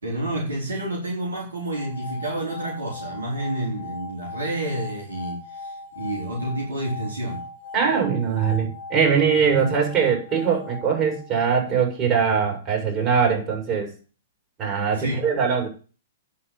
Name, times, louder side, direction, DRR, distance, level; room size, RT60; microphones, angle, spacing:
voice 1, 0.0-7.5 9.5-9.7 15.0-15.2, right 1 dB, 85° right, -2 dB, 4.3 m, -29 dB
sound 1, 1.6-11.8, left 2 dB, 65° right, 4.5 m, -39 dB
voice 2, 7.7-13.9 14.6-15.7, right 6 dB, 30° right, 1 dB, 5.7 m, -22 dB
9.8 x 5.9 x 8.5 m, 0.36 s
hypercardioid pair, 115°, 0 cm